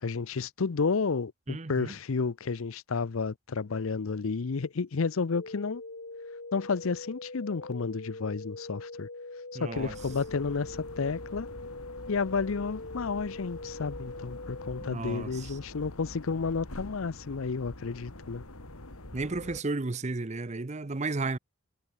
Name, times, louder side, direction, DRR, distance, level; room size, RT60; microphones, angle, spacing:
voice 1, 0.0-5.8 6.5-9.1 9.6-11.5 12.1-18.4, left 4 dB, 70° left, 0.6 m, -31 dB
voice 2, 1.5-1.9 9.5-9.9 14.8-15.6 19.1-21.4, right 3 dB, 30° right, 0.7 m, -33 dB
sound 1, 5.3-14.9, left 2 dB, 55° left, 1.7 m, -43 dB
sound 2, 9.7-19.6, left 1 dB, 90° left, 3.3 m, -45 dB
head